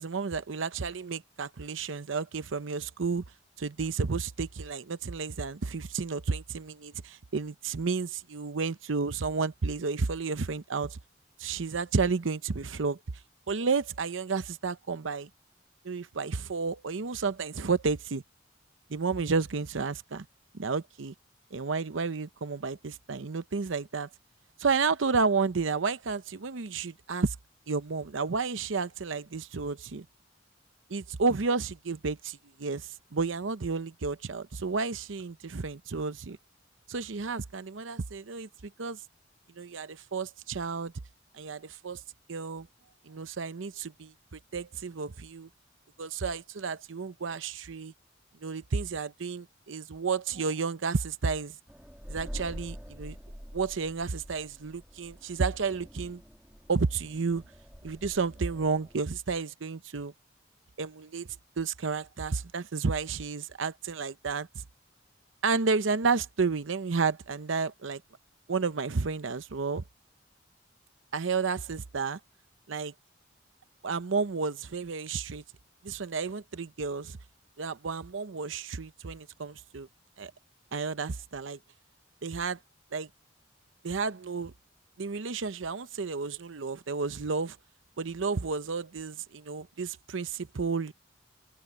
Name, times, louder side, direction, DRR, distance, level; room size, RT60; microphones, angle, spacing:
voice 1, 0.0-3.2 3.6-11.0 11.4-13.0 13.5-15.3 15.8-18.2 18.9-20.3 20.5-21.1 21.5-24.1 24.6-27.3 27.7-30.1 30.9-36.4 36.9-39.0 39.6-40.9 41.3-42.0 42.3-42.7 43.1-45.5 46.0-47.9 48.4-51.6 52.1-53.2 53.5-56.2 56.7-57.4 57.8-60.1 60.8-61.3 61.6-64.5 65.4-68.0 68.5-69.8 71.1-72.2 72.7-72.9 73.8-75.4 75.8-77.2 77.6-79.9 80.2-80.3 80.7-81.6 82.2-82.6 82.9-83.1 83.8-84.5 85.0-87.6 88.0-90.9, right 4 dB, 90° right, 0.7 m, -31 dB
sound 1, 51.7-59.1, equal, 5° right, 1.7 m, -46 dB
open air
head